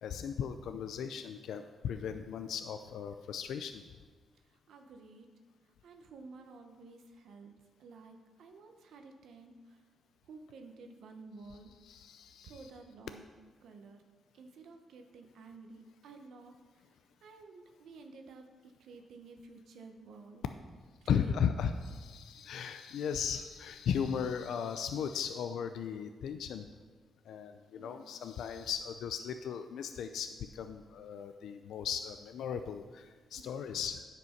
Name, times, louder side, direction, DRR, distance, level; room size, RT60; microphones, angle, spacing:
voice 1, 0.0-3.8 11.8-12.6 21.1-26.7 27.3-34.0, left 7 dB, 85° left, 8 dB, 0.4 m, -36 dB
voice 2, 4.3-5.3 5.6-7.5 7.8-9.8 10.3-11.7 12.4-13.3 13.6-14.0 14.3-20.4 21.0-21.8 22.6-22.7 27.8-28.3 33.4-33.5, right 3 dB, 80° right, 5 dB, 0.9 m, -52 dB
9.4 x 5.2 x 5.8 m, 1.4 s
cardioid pair, 110°, 0 cm